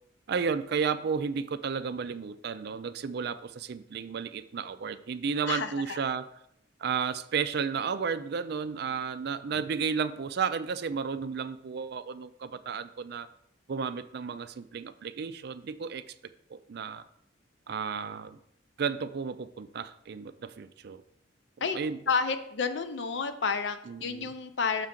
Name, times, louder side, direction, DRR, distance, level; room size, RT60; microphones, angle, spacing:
voice 1, 0.3-6.3 6.8-13.3 13.7-16.0 16.5-17.0 17.7-18.4 18.8-21.0 21.6-22.0 23.9-24.3, right 6 dB, 55° right, 12 dB, 0.4 m, -33 dB
voice 2, 5.4-6.0 21.6-21.8 22.1-24.9, left 5 dB, 65° left, 9 dB, 0.6 m, -30 dB
6.5 x 3.7 x 5.9 m, 0.74 s
head